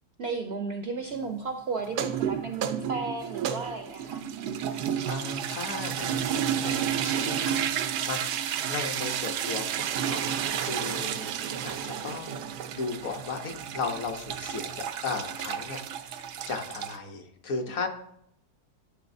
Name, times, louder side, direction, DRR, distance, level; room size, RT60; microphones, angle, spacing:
voice 1, 0.2-4.2, right 4 dB, 65° right, 5 dB, 0.6 m, -34 dB
sound 1, 1.8-17.0, right 9 dB, 90° right, 1.2 m, -31 dB
voice 2, 4.7-8.3 8.7-17.9, left 4 dB, 60° left, 3 dB, 1.3 m, -36 dB
12.0 x 6.4 x 2.6 m, 0.74 s
omnidirectional pair, 1.7 m